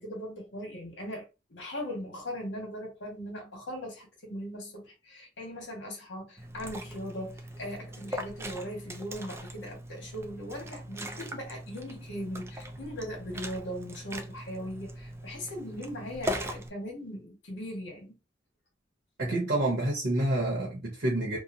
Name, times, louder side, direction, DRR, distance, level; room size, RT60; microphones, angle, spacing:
voice 1, 0.0-18.2 19.3-19.5, equal, 80° left, 1.3 m, -39 dB
Liquid, 6.4-16.7, equal, 15° right, 0.3 m, -40 dB
voice 2, 19.2-21.4, right 1 dB, 65° right, 0.9 m, -28 dB
2.9 x 2.1 x 2.5 m
head